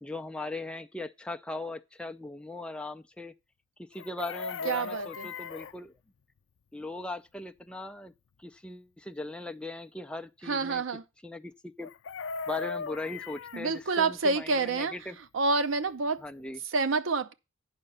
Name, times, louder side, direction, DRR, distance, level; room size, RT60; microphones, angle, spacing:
voice 1, 0.0-3.3 3.8-5.9 6.7-8.1 8.4-10.8 11.2-11.9 12.5-15.2 16.2-16.6, left 2 dB, 5° left, 0.4 m, -39 dB
Chicken rooster, 3.9-5.8 11.8-13.6 15.9-16.0 16.2-16.5, left 5 dB, 80° left, 0.4 m, -37 dB
voice 2, 4.6-5.3 10.5-11.0 13.5-14.9 15.3-16.2 16.7-17.3, right 3 dB, 80° right, 0.6 m, -28 dB
8.8 x 5.9 x 5.4 m
head